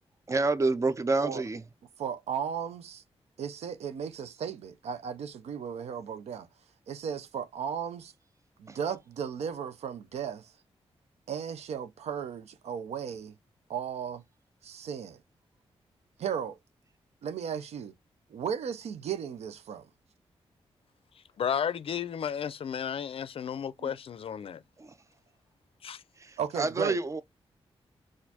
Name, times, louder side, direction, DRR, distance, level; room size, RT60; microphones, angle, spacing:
voice 1, 0.3-1.6 8.7-8.8 24.8-24.9 26.2-27.2, right 3 dB, 30° right, 0.5 m, -28 dB
voice 2, 2.0-3.0 3.4-6.5 6.9-8.1 8.6-10.5 11.3-13.3 13.7-14.2 14.6-15.2 16.2-16.6 17.2-17.9 18.3-19.8 23.8-23.9 26.4-27.0, right 7 dB, 85° right, 0.5 m, -35 dB
voice 3, 21.4-24.6 25.8-26.0, left 8 dB, 60° left, 0.4 m, -33 dB
4.2 x 2.5 x 2.8 m
cardioid pair, 70°, 11 cm